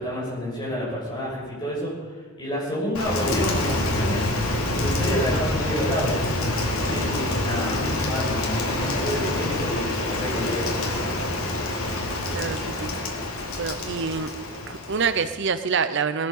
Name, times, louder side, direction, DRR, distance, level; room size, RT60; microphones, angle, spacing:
voice 1, 0.0-2.1 2.4-4.3 4.7-6.2 6.8-11.1, equal, 20° left, -5 dB, 6.2 m, -29 dB
Rain, 2.9-15.4, left 2 dB, 75° left, 2.7 m, -26 dB
voice 2, 12.3-12.9 13.6-14.3 14.7-16.3, right 5 dB, 55° right, 11 dB, 0.6 m, -26 dB
19.0 x 13.0 x 5.4 m, 1.5 s
head